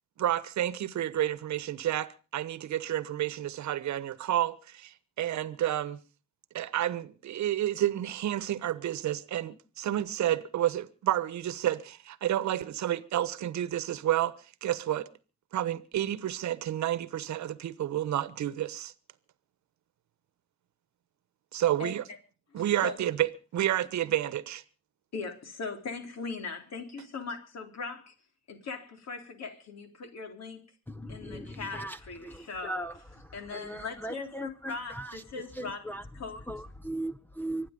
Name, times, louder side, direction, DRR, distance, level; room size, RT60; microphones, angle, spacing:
voice 1, 0.2-6.0 6.5-14.3 14.6-15.1 15.5-18.9 21.5-22.0 22.5-24.6, right 12 dB, 70° right, 1.2 m, -30 dB
voice 2, 21.5-21.9 22.5-23.0 25.1-28.1 28.5-30.6 31.1-32.9 33.3-36.4, left 4 dB, 60° left, 3.7 m, -40 dB
voice 3, 30.9-32.0 32.2-32.9 33.5-35.1 35.6-36.0 36.5-37.7, right 1 dB, 5° left, 0.7 m, -38 dB
25.0 x 9.5 x 5.3 m
cardioid pair, 90°, 30 cm